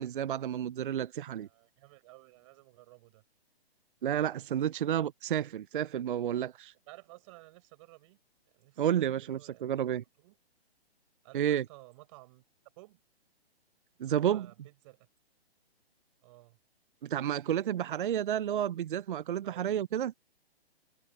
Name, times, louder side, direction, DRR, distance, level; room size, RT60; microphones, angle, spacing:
voice 1, 0.0-1.5 4.0-6.7 8.8-10.0 11.3-11.7 14.0-14.5 17.0-20.1, right 10 dB, 55° right, 0.5 m, -31 dB
voice 2, 1.4-3.2 6.9-8.2 8.5-9.8 10.2-10.4 11.2-12.4 12.8-13.0 14.0-15.1 16.2-16.6 19.4-19.8, right 22 dB, 30° right, 6.4 m, -55 dB
hypercardioid pair, 155°, 32 cm